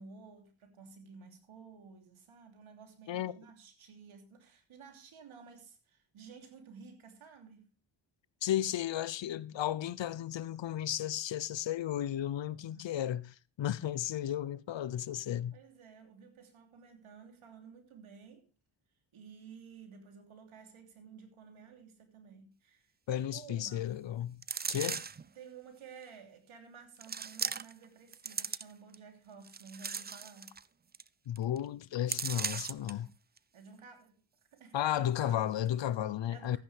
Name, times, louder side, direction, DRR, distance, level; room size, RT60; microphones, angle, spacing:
voice 1, 0.0-7.7 12.4-12.9 15.5-18.5 19.1-23.9 24.8-25.0 25.3-30.5 33.5-34.2 34.5-35.5 36.3-36.6, right 5 dB, 75° right, 3.2 m, -53 dB
voice 2, 8.4-15.6 23.1-24.4 24.7-25.0 31.3-33.1 34.7-36.6, left 11 dB, 65° left, 0.8 m, -34 dB
sound 1, 24.4-25.3 26.0-26.1 27.0-27.8 28.1-28.9 29.4-30.6 30.9-31.1 31.4-31.6 32.1-32.9 33.4-33.5, right 6 dB, 20° right, 0.5 m, -37 dB
14.0 x 10.0 x 3.4 m
cardioid pair, 65°, 49 cm